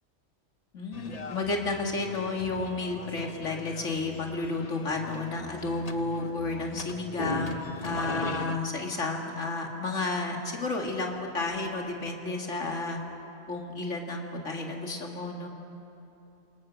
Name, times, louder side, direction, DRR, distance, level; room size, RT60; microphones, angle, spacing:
voice 1, 0.7-13.0 13.5-15.5, left 3 dB, 85° left, 1 dB, 2.5 m, -32 dB
sound 1, 0.9-8.6, left 3 dB, 35° left, 0.9 m, -39 dB
29.0 x 26.0 x 6.4 m, 3.0 s
omnidirectional pair, 1.2 m